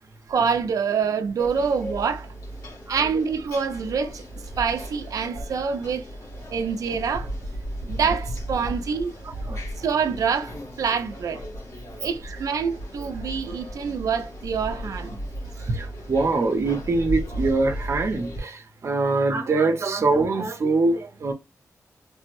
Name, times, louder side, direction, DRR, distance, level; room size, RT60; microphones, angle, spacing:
voice 1, 0.3-2.3 2.9-4.2 4.6-6.1 6.5-7.3 7.8-9.4 9.8-11.4 12.0-15.2, right 6 dB, 90° right, 0.5 m, -26 dB
sound 1, 1.4-18.4, right 1 dB, 75° left, 1.3 m, -35 dB
voice 2, 15.6-21.3, right 3 dB, 55° right, 0.7 m, -23 dB
3.3 x 2.1 x 3.1 m
wide cardioid pair, 130°, 6 cm